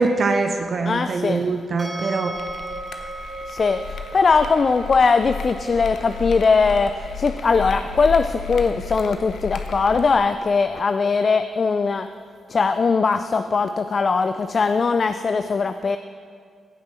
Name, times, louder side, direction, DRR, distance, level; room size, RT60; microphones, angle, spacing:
voice 1, 0.0-2.3, right 3 dB, 55° right, 6 dB, 0.6 m, -23 dB
voice 2, 0.8-1.4 3.5-12.1 12.5-16.0, left 4 dB, 50° left, 10 dB, 0.3 m, -20 dB
sound 1, 1.8-14.8, right 1 dB, 15° right, 1.4 m, -40 dB
sound 2, 2.3-10.2, left 6 dB, 70° left, 0.7 m, -33 dB
16.5 x 6.0 x 4.3 m, 2.1 s
supercardioid pair, 45°, 0 cm